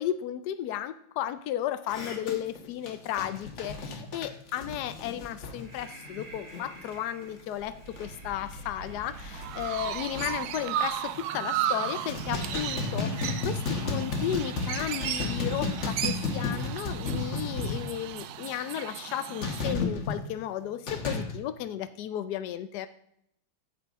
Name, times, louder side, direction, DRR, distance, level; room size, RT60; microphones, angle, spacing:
voice 1, 0.0-22.9, left 11 dB, 80° left, 11 dB, 0.9 m, -34 dB
sound 1, 1.9-7.0 7.2-7.4 7.8-8.1 8.5-8.6 9.1-9.2 9.4-10.5 11.1-11.6 11.8-18.3 19.4-20.2 20.9-21.3, left 3 dB, 40° left, 1.3 m, -33 dB
Breathing, 5.2-11.2, right 1 dB, 45° right, 1.8 m, -47 dB
Chirp tweet, 9.1-19.7, right 11 dB, 80° right, 0.8 m, -35 dB
9.3 x 7.7 x 3.6 m, 0.71 s
omnidirectional pair, 2.3 m